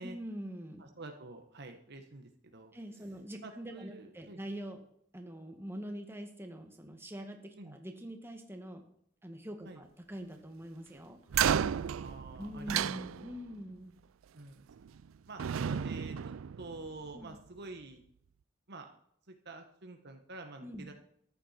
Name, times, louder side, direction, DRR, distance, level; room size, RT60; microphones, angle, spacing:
voice 1, 0.0-0.8 2.7-4.8 5.1-8.8 9.2-11.2 12.4-13.9 17.1-17.4 20.6-20.9, equal, 10° right, 4 dB, 1.9 m, -44 dB
voice 2, 0.8-2.7 3.4-4.4 7.6-7.8 9.6-9.8 12.0-13.1 14.3-14.7 15.3-18.0 18.7-18.9 19.3-20.9, right 2 dB, 55° right, 5 dB, 1.3 m, -48 dB
sound 1, 11.3-13.6 14.7-15.1 15.4-17.1, right 8 dB, 90° right, 0.4 m, -33 dB
14.5 x 11.0 x 4.4 m, 0.68 s
head